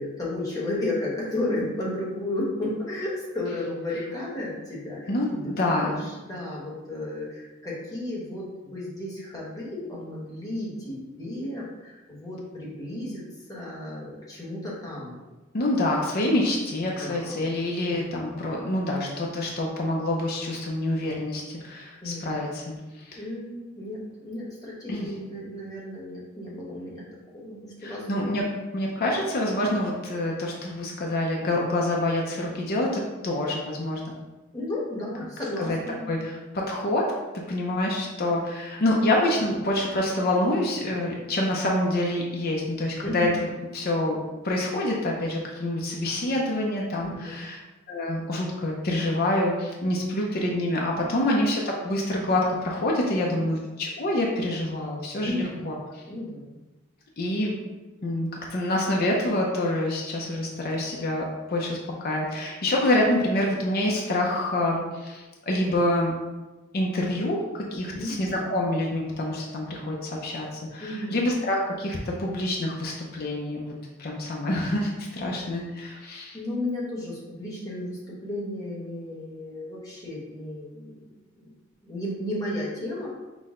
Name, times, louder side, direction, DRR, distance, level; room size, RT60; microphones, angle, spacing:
voice 1, 0.0-15.2 16.8-17.6 17.8-18.0 22.0-22.4 23.1-27.0 27.3-28.4 34.5-36.1 43.0-43.3 47.0-47.5 51.0-51.3 53.1-53.6 55.2-55.7 56.1-56.6 67.9-68.2 70.8-71.3 76.3-81.1 81.4-81.5 81.8-83.1, left 1 dB, 15° left, -6 dB, 1.1 m, -33 dB
voice 2, 5.1-6.1 15.5-23.2 24.9-25.1 27.8-28.5 28.7-34.1 35.6-35.8 36.1-37.1 37.5-43.5 43.7-44.2 44.4-47.6 47.9-56.0 57.2-57.6 58.0-61.2 61.5-66.1 66.7-73.7 74.0-76.4, left 1 dB, 45° left, -2 dB, 0.6 m, -27 dB
6.1 x 2.1 x 3.6 m, 1.2 s
head